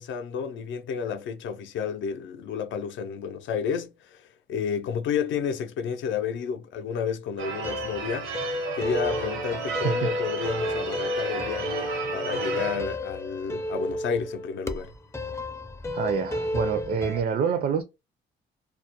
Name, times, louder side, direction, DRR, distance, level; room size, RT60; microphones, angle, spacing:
voice 1, 0.0-8.3 8.8-14.9, left 7 dB, 75° left, 0.5 m, -31 dB
Church bell / Car / Alarm, 7.4-12.9, right 5 dB, 90° right, 0.8 m, -34 dB
sound 1, 7.6-17.2, left 1 dB, 15° left, 0.4 m, -32 dB
voice 2, 15.9-17.8, right 7 dB, 50° right, 0.4 m, -27 dB
2.3 x 2.1 x 2.8 m
cardioid pair, 90°, 20 cm